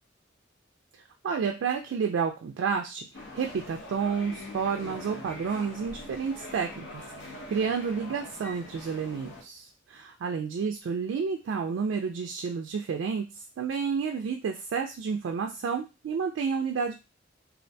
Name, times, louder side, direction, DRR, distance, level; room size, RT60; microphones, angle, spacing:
voice 1, 1.2-3.1 3.3-16.9, right 6 dB, 80° right, 3 dB, 0.3 m, -30 dB
sound 1, 3.1-9.4, left 2 dB, 65° left, 0.6 m, -43 dB
2.3 x 2.1 x 2.6 m, 0.27 s
head